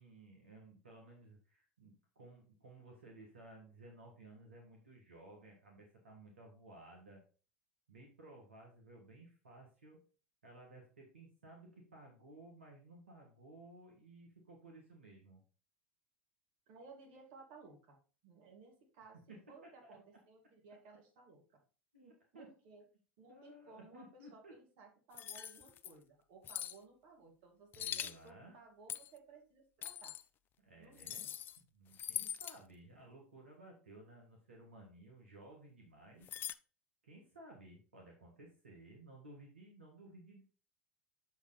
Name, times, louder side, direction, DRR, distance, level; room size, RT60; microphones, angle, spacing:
voice 1, 0.0-7.2 7.9-10.0 10.4-15.4 19.3-20.0 21.9-22.5 23.3-24.6 27.8-28.6 30.6-31.3 31.7-36.4 37.0-40.4, right 2 dB, 85° right, 0 dB, 1.7 m, -57 dB
voice 2, 16.7-21.6 22.3-22.8 23.2-30.1 30.8-31.3, right 4 dB, 55° right, 0 dB, 2.3 m, -59 dB
sound 1, 25.1-25.9 26.4-26.8 27.7-28.2 28.9-29.2 29.8-30.2 31.0-31.6 31.9-32.6 36.2-36.5, left 10 dB, 35° left, 0.4 m, -42 dB
6.9 x 4.7 x 4.0 m, 0.37 s
figure-of-eight pair, 80°, 6 cm